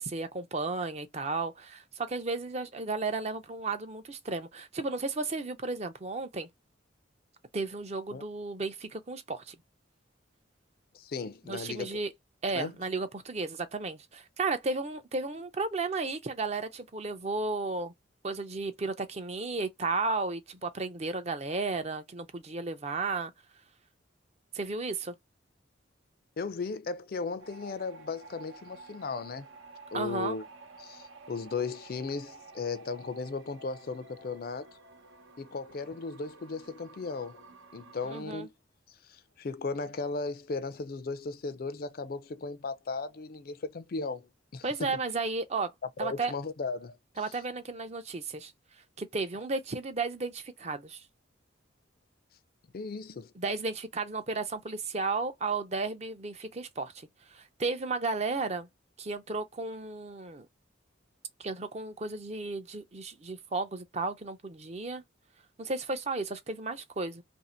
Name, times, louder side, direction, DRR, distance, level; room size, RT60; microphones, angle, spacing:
voice 1, 0.0-6.5 7.5-9.5 11.5-12.1 12.4-17.9 18.2-23.3 24.5-25.1 29.9-30.4 38.0-38.5 44.6-45.7 46.0-46.3 47.2-48.5 49.0-51.0 53.4-58.7 59.0-60.5 61.4-65.0 65.6-67.2, right 3 dB, 35° right, 0.5 m, -34 dB
voice 2, 10.9-12.0 12.5-12.7 26.4-29.5 29.9-30.4 30.8-34.7 35.4-37.4 37.7-38.5 39.0-44.9 46.0-47.0 52.7-53.3, left 4 dB, 50° left, 0.4 m, -36 dB
sound 1, 27.4-38.2, right 3 dB, 80° right, 0.8 m, -52 dB
2.9 x 2.6 x 4.2 m
head